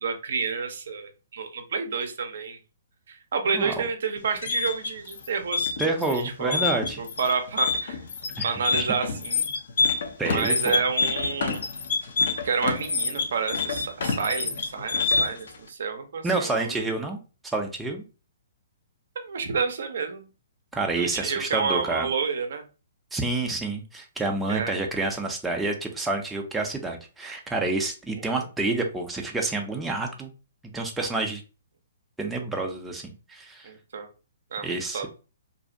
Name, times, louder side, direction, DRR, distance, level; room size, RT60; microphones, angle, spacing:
voice 1, 0.0-2.6 3.1-6.6 7.0-8.0 8.4-9.5 10.3-11.6 12.4-16.9 19.2-20.3 21.0-22.6 24.5-24.7 28.4-28.5 33.6-34.1 34.5-35.1, right 5 dB, 65° right, 7 dB, 0.5 m, -29 dB
voice 2, 3.5-3.8 5.8-7.0 8.4-8.5 8.8-8.9 10.2-10.8 16.2-18.0 20.7-22.1 23.1-30.3 30.7-31.4 32.2-33.7 34.6-35.1, right 3 dB, 5° right, 1 dB, 0.4 m, -28 dB
sound 1, 4.2-15.5, left 4 dB, 65° left, 0.4 m, -26 dB
2.5 x 2.0 x 2.4 m, 0.33 s
hypercardioid pair, 135°, 0 cm